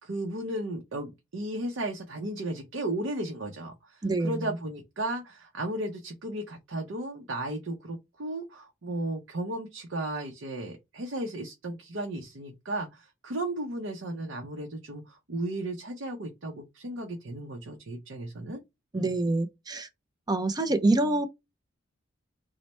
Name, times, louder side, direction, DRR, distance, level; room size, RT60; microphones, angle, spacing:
voice 1, 0.0-18.6 18.9-19.1, right 1 dB, 70° right, 0.6 m, -35 dB
voice 2, 4.0-4.5 18.9-19.9 20.3-21.3, right 2 dB, 20° right, 0.4 m, -26 dB
3.1 x 2.1 x 4.1 m
head